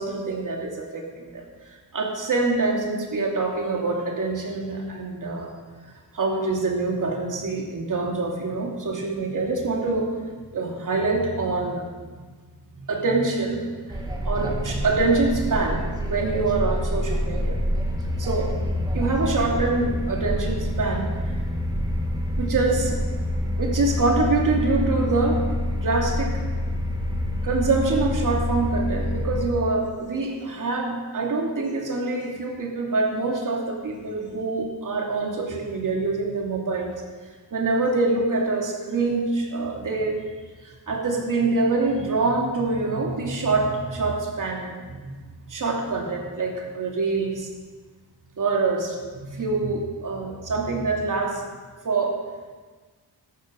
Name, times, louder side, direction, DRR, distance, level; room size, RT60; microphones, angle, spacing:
voice 1, 0.0-1.4 1.9-5.5 6.1-10.1 10.5-11.8 12.7-17.6 18.2-18.5 18.9-21.1 22.4-23.0 23.6-25.4 25.8-26.5 27.4-36.9 37.5-40.2 40.9-45.2 45.5-47.5 48.4-51.4 51.8-52.2, right 3 dB, 50° right, 0 dB, 2.8 m, -25 dB
sound 1, 13.9-29.5, left 1 dB, 10° right, 2.0 m, -27 dB
13.0 x 12.0 x 5.2 m, 1.4 s
cardioid pair, 100°, 40 cm